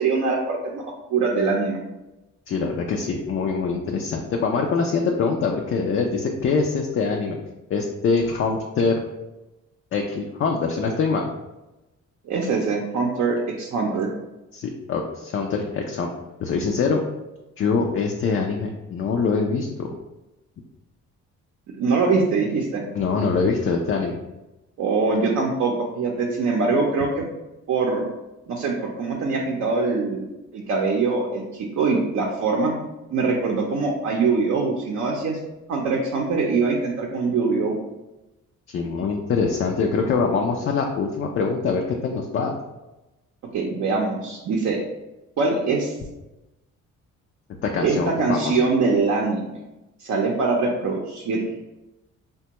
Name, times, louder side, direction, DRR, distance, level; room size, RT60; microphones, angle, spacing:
voice 1, 0.0-1.8 12.2-14.1 21.8-22.9 24.8-27.3 27.7-28.0 28.5-32.7 33.1-35.4 35.7-37.8 43.5-44.8 45.4-45.9 47.8-49.5 50.0-51.5, right 4 dB, 60° right, -1 dB, 0.6 m, -23 dB
voice 2, 2.5-7.4 7.7-9.0 9.9-11.3 14.5-16.1 16.4-17.0 17.6-19.9 22.9-24.2 38.7-42.6 47.6-48.5, left 4 dB, 45° left, 1 dB, 0.4 m, -24 dB
3.4 x 2.2 x 2.9 m, 1.0 s
cardioid pair, 90°, 30 cm